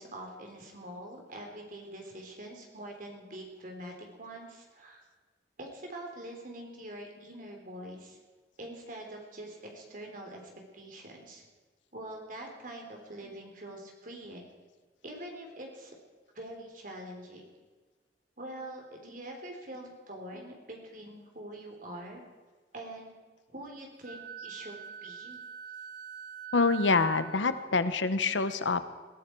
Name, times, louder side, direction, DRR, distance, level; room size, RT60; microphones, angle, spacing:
voice 1, 0.0-5.0 5.6-8.2 8.6-11.4 11.9-14.4 15.0-16.0 16.3-17.4 18.4-22.2 22.7-23.1 23.5-25.4, right 1 dB, 45° right, 1 dB, 3.6 m, -44 dB
Wind instrument woodwind instrument, 24.0-27.6, right 8 dB, 65° right, 1.8 m, -43 dB
voice 2, 26.5-29.0, left 4 dB, 90° left, 12 dB, 1.0 m, -26 dB
21.5 x 14.5 x 4.6 m, 1.4 s
head